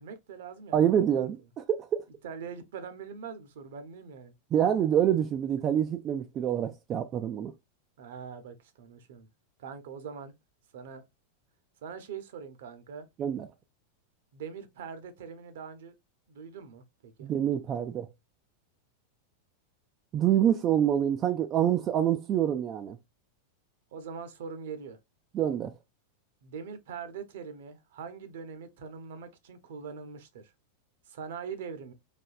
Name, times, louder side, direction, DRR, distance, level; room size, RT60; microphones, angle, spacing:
voice 1, 0.0-1.0 2.2-4.3 8.0-9.3 9.6-10.3 10.7-11.0 11.8-13.1 14.3-15.9 16.3-17.3 23.9-25.0 26.4-30.5 31.1-31.9, right 6 dB, 55° right, 0.8 m, -42 dB
voice 2, 0.7-1.9 4.5-7.5 13.2-13.5 17.2-18.1 20.1-23.0 25.3-25.7, right 10 dB, 30° right, 0.4 m, -26 dB
4.3 x 3.1 x 2.4 m
figure-of-eight pair, 90°, 0 cm